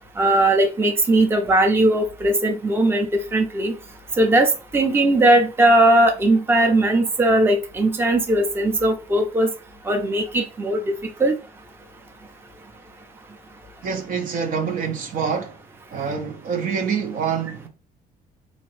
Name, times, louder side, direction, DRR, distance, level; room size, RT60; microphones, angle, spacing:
voice 1, 0.2-3.1 3.3-3.8 4.2-9.5 9.9-10.8 11.2-11.3, right 1 dB, 15° right, 0.6 m, -18 dB
voice 2, 13.8-15.6 15.9-17.7, right 6 dB, 55° right, 0.7 m, -26 dB
3.6 x 2.6 x 3.2 m
cardioid pair, 110°, 17 cm